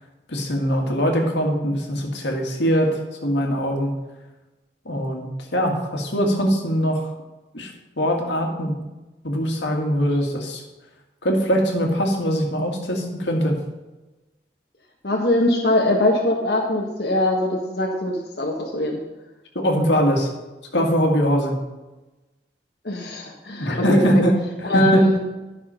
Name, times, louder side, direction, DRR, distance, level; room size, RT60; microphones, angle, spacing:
voice 1, 0.3-3.9 4.9-7.1 7.5-7.7 8.0-8.7 9.2-10.6 11.2-13.6 19.6-20.3 20.7-21.6 23.6-24.4 24.7-25.0, equal, 85° left, 2 dB, 1.9 m, -22 dB
voice 2, 15.0-19.0 22.8-24.2 24.6-25.2, left 1 dB, 60° left, -2 dB, 1.4 m, -22 dB
11.5 x 6.1 x 5.6 m, 1.1 s
head